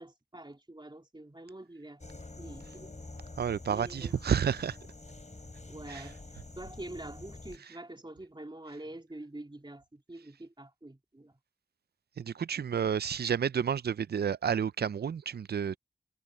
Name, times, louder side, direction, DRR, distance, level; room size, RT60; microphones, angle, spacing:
voice 1, 0.0-2.9 3.7-4.2 5.7-11.4, right 1 dB, 25° right, 3.4 m, -46 dB
sound 1, 2.0-7.6, left 2 dB, 45° left, 3.3 m, -47 dB
voice 2, 3.4-4.8 5.9-6.0 12.2-15.8, right 7 dB, 70° right, 0.4 m, -30 dB
cardioid pair, 45°, 17 cm